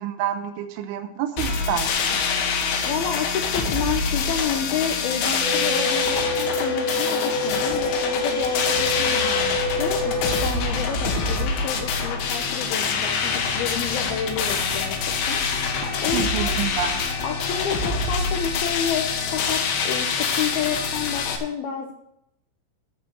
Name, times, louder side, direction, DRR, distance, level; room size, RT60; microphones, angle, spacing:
voice 1, 0.0-2.2 15.8-16.9, right 9 dB, 80° right, 7 dB, 3.0 m, -28 dB
sound 1, 1.4-21.4, left 5 dB, 70° left, 3.3 m, -25 dB
voice 2, 2.9-15.0 15.2-16.6 17.2-21.9, left 7 dB, 90° left, 3 dB, 2.1 m, -30 dB
sound 2, 3.9-18.9, left 1 dB, 20° left, 2.6 m, -43 dB
sound 3, 5.4-10.4, left 2 dB, 40° right, 4.2 m, -26 dB
14.0 x 4.8 x 7.3 m, 0.77 s
omnidirectional pair, 5.9 m